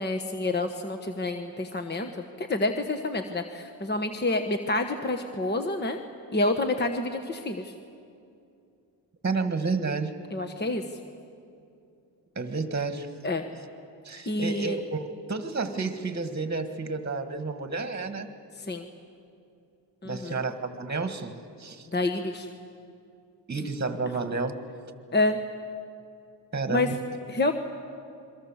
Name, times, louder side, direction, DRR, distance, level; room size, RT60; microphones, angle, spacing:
voice 1, 0.0-6.0 6.3-7.7 10.3-10.8 13.2-13.4 14.3-14.8 18.6-18.9 20.0-20.4 21.9-22.5 25.1-25.4 26.7-26.9 27.3-27.5, left 2 dB, 25° left, 6 dB, 1.2 m, -28 dB
voice 2, 9.2-10.1 12.3-13.1 14.0-18.3 20.0-21.3 21.6-21.9 23.5-24.5 26.5-27.0, right 4 dB, 25° right, 8 dB, 1.6 m, -30 dB
27.5 x 23.0 x 7.3 m, 2.6 s
cardioid pair, 95°, 45 cm